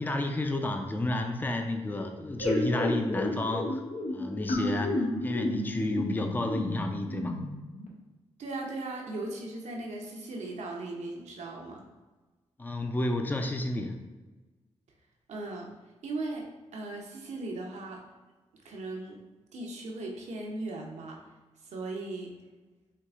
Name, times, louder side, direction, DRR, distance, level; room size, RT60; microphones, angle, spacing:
voice 1, 0.0-3.8 4.1-7.4 12.6-14.0, left 1 dB, 15° left, 5 dB, 0.4 m, -31 dB
sound 1, 2.4-7.9, left 1 dB, 75° left, 0.7 m, -32 dB
voice 2, 8.4-11.9 15.3-15.7 16.0-18.0 18.6-19.2 19.5-21.2 21.7-22.4, right 2 dB, 80° right, 0 dB, 0.7 m, -38 dB
4.5 x 3.1 x 2.4 m, 1.2 s
cardioid pair, 60°, 12 cm